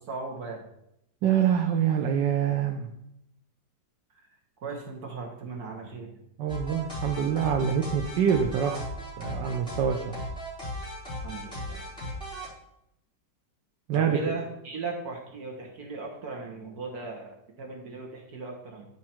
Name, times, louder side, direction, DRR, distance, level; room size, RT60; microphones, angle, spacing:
voice 1, 0.1-0.6 4.6-6.1 11.2-11.8 13.9-18.9, right 3 dB, 60° right, 0 dB, 1.7 m, -37 dB
voice 2, 1.2-2.9 6.4-8.8 9.2-10.1 13.9-14.2, right 8 dB, 75° right, 2 dB, 1.3 m, -25 dB
sound 1, 6.5-12.5, equal, 5° left, 3.5 m, -36 dB
10.0 x 4.7 x 4.4 m, 0.80 s
omnidirectional pair, 1.9 m